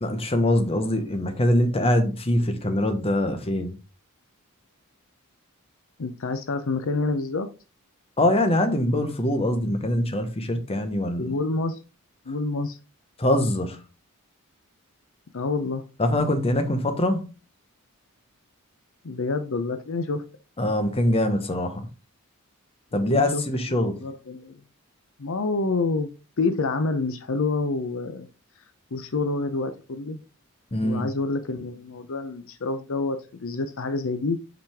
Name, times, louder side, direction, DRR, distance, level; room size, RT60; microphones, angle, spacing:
voice 1, 0.0-3.8 8.2-11.3 13.2-13.8 16.0-17.3 20.6-21.9 22.9-24.0 30.7-31.1, left 1 dB, 25° left, 1.0 m, -23 dB
voice 2, 6.0-7.5 11.2-11.8 12.3-12.8 15.3-15.8 19.0-20.2 23.1-23.4 23.8-24.6 25.2-26.1 26.4-28.3 28.9-30.2 30.8-34.4, left 3 dB, 65° left, 0.7 m, -27 dB
5.8 x 5.1 x 3.5 m
head